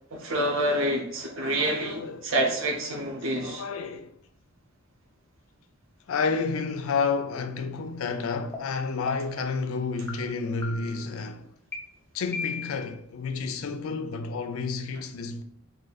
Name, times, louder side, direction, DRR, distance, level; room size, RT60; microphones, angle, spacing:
voice 1, 0.1-3.6, right 1 dB, 65° right, 0.7 m, -27 dB
voice 2, 1.4-2.3 3.0-4.2 6.1-11.5 12.1-15.4, left 4 dB, 75° left, 0.4 m, -31 dB
sound 1, 8.5-8.6 9.1-9.5 10.1-10.2 10.6-11.1 11.7-11.8 12.3-12.9, left 4 dB, 10° left, 0.4 m, -36 dB
2.7 x 2.6 x 3.9 m
head